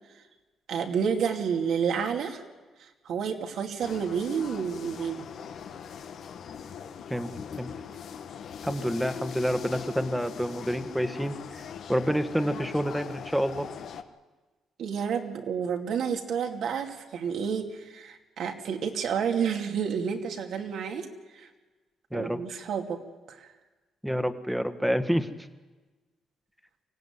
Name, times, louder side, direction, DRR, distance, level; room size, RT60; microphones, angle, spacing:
voice 1, 0.7-2.4 2.8-5.3 14.8-21.1 21.3-21.5 22.1-23.0 23.3-23.5, right 7 dB, 70° right, 3 dB, 2.7 m, -30 dB
sound 1, 3.8-14.0, left 7 dB, 65° left, 1.4 m, -41 dB
voice 2, 8.6-11.4 11.9-13.7 22.1-22.4 24.0-25.3, equal, ahead, 9 dB, 1.6 m, -28 dB
24.5 x 16.0 x 9.7 m, 1.3 s
cardioid pair, 90°, 0 cm